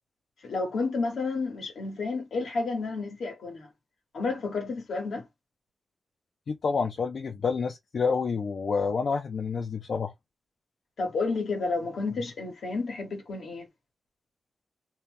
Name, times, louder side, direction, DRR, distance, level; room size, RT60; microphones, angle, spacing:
voice 1, 0.4-3.7 4.1-5.2 11.0-13.7, left 3 dB, 90° left, 1.2 m, -31 dB
voice 2, 6.5-10.1, left 5 dB, 70° left, 0.5 m, -28 dB
2.8 x 2.1 x 3.3 m
wide cardioid pair, 85°, 0 cm